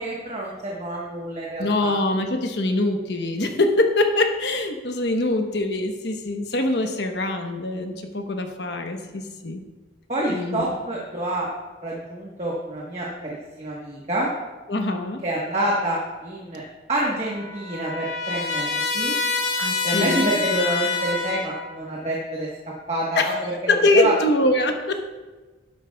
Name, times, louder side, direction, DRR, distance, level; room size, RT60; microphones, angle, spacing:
voice 1, 0.0-2.0 10.1-11.5 11.8-14.3 15.2-16.6 16.9-19.1 19.8-22.5 22.9-24.1, right 1 dB, 35° right, -4 dB, 1.3 m, -27 dB
voice 2, 1.6-9.6 10.3-10.6 14.7-15.2 19.6-20.4 23.1-24.9, left 2 dB, 60° left, 4 dB, 1.0 m, -23 dB
Trumpet, 17.0-21.7, left 4 dB, 85° left, 2.2 m, -27 dB
13.0 x 11.5 x 2.3 m, 1.3 s
head